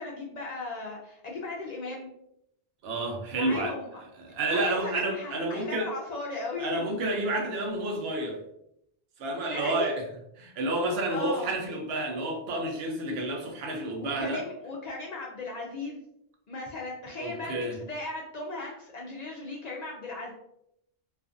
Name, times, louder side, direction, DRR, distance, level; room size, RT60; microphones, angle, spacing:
voice 1, 0.0-2.1 3.4-3.9 4.5-6.8 9.5-9.9 11.1-11.5 14.0-16.0 16.5-20.3, left 3 dB, 55° left, -2 dB, 0.5 m, -37 dB
voice 2, 2.8-3.7 4.2-5.9 6.6-8.4 9.2-10.0 10.4-14.4 17.2-17.8, right 2 dB, 75° right, 2 dB, 0.9 m, -30 dB
2.4 x 2.4 x 2.4 m, 0.77 s
omnidirectional pair, 1.0 m